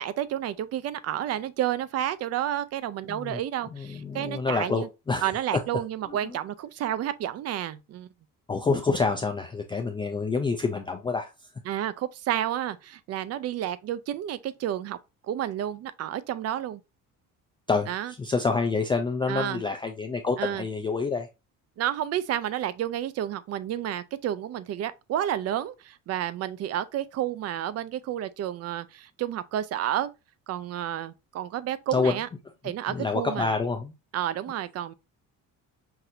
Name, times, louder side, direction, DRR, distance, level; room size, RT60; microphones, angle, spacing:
voice 1, 0.0-4.9 5.2-8.1 11.6-15.0 15.3-16.8 17.9-18.1 19.3-19.6 20.4-20.7 21.8-30.1 30.5-32.3 32.6-33.5 34.1-34.9, right 11 dB, 50° right, 0.5 m, -30 dB
voice 2, 3.1-3.4 3.7-5.3 8.5-11.3 17.7-17.9 18.2-21.3 31.9-32.1 32.9-33.9, left 4 dB, 15° left, 0.3 m, -27 dB
5.9 x 2.6 x 2.6 m
cardioid pair, 140°, 34 cm